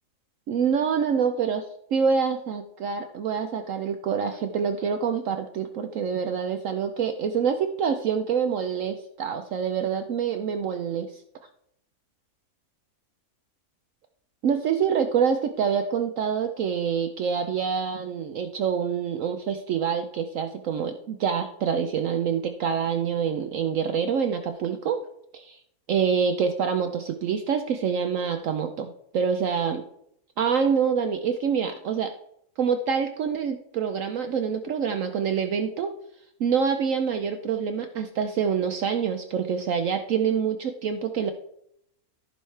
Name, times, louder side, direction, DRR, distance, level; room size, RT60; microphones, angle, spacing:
voice 1, 0.5-1.7 1.9-11.2 14.4-25.0 25.3-25.6 25.9-29.8 30.4-32.1 32.6-35.9 36.4-41.3, right 6 dB, 65° right, 6 dB, 1.0 m, -26 dB
14.0 x 5.5 x 3.3 m, 0.73 s
omnidirectional pair, 1.6 m